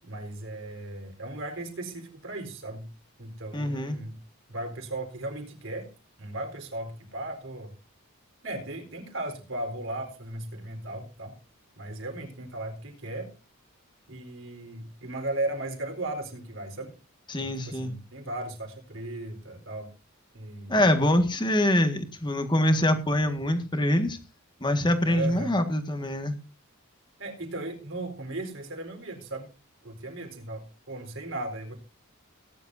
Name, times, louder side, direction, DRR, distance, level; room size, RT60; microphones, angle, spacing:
voice 1, 0.0-2.9 3.2-4.2 4.5-5.9 6.2-7.7 8.4-11.3 11.8-13.3 14.1-16.9 17.4-19.9 20.3-20.8 25.1-25.5 27.2-29.5 29.8-31.8, right 2 dB, 60° right, 3 dB, 4.4 m, -36 dB
voice 2, 3.5-4.0 17.3-17.9 20.7-24.2 24.6-26.3, left 1 dB, 20° left, 7 dB, 1.8 m, -24 dB
18.5 x 11.0 x 2.7 m, 0.32 s
head